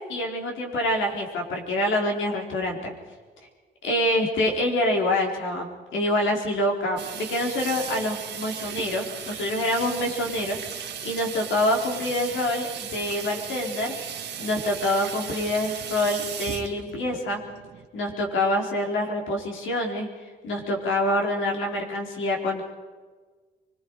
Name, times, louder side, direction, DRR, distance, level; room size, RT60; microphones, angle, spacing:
voice 1, 0.1-2.9 3.8-13.9 14.4-17.4 17.9-20.1 20.4-22.6, left 1 dB, 75° left, 0 dB, 4.6 m, -26 dB
Water tap faucet / Sink (filling or washing), 7.0-17.9, right 8 dB, 60° right, 2.0 m, -36 dB
25.0 x 22.0 x 5.0 m, 1.4 s
cardioid pair, 90°, 20 cm